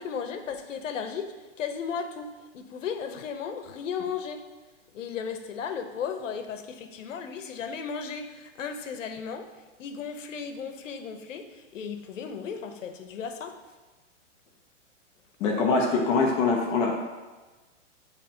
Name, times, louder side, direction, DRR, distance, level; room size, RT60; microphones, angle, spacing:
voice 1, 0.0-4.4 4.9-13.6, left 6 dB, 85° left, 7 dB, 0.8 m, -35 dB
voice 2, 15.4-16.9, left 4 dB, 20° left, 0 dB, 0.5 m, -23 dB
7.5 x 3.1 x 4.3 m, 1.2 s
hypercardioid pair, 150°, 37 cm